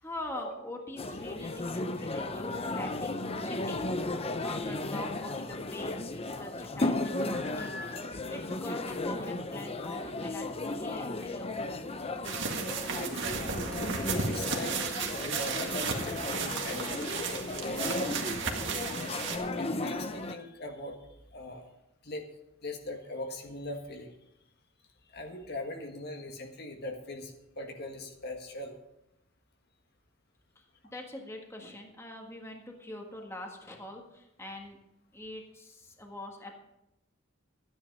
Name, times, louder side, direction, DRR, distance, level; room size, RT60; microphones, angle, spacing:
voice 1, 0.0-3.9 4.4-7.9 8.3-11.5 30.5-30.6 30.9-34.8 35.1-36.5, left 1 dB, 15° left, 1 dB, 1.6 m, -43 dB
sound 1, 1.0-20.4, left 2 dB, 30° left, 0.7 m, -35 dB
voice 2, 7.4-8.0 13.0-13.4 14.2-18.2 19.6-21.1 21.3-21.7 22.0-22.3 22.6-24.2 25.1-28.7, left 1 dB, 50° left, 3 dB, 1.6 m, -41 dB
sound 2, 12.2-19.4, right 5 dB, 60° right, 1.9 m, -34 dB
13.5 x 9.9 x 5.4 m, 0.85 s
head